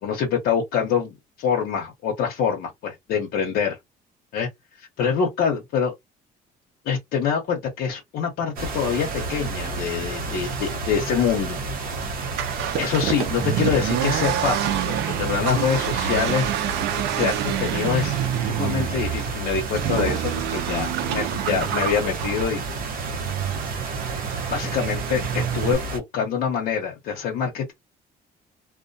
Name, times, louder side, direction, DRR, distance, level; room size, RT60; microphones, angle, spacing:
voice 1, 0.0-3.8 4.3-4.5 5.0-5.9 6.8-11.6 12.8-16.5 17.1-18.2 18.4-22.6 24.5-27.7, left 7 dB, 75° left, 0.7 m, -25 dB
sound 1, 8.6-26.0, right 3 dB, 60° right, 0.8 m, -31 dB
Accelerating revving vroom, 12.2-25.7, right 11 dB, 80° right, 0.4 m, -28 dB
2.2 x 2.1 x 2.6 m
cardioid pair, 110°, 17 cm